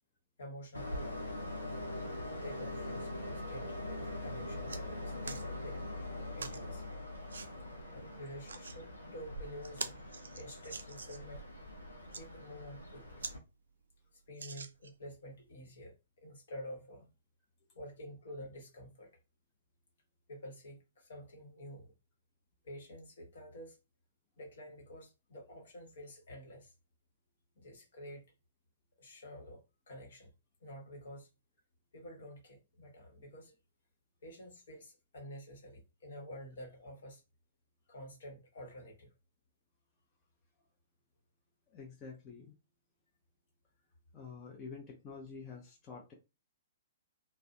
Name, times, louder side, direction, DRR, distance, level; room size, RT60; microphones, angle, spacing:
voice 1, 0.4-1.2 2.4-5.9 6.3-6.9 7.9-9.9 10.3-11.5 12.2-13.3 14.1-17.1 17.7-19.2 20.3-21.9 22.6-23.8 24.4-26.7 27.5-28.3 29.0-30.3 30.6-31.3 31.9-33.6 34.2-37.2 37.9-39.1, equal, 60° left, 1.0 m, -49 dB
Train, 0.7-13.4, left 1 dB, 90° left, 0.6 m, -43 dB
sound 1, 4.7-4.8 5.2-5.5 6.4-6.6 7.3-7.5 8.3-8.8 9.2-9.3 9.6-11.3 11.9-12.2 12.8-12.9 13.2-13.4 13.7-13.8 14.3-15.1 15.7-15.8, right 5 dB, 70° right, 0.3 m, -44 dB
voice 2, 41.7-42.6 44.1-46.1, left 5 dB, 25° left, 0.5 m, -48 dB
2.5 x 2.1 x 2.5 m
figure-of-eight pair, 115°, 0 cm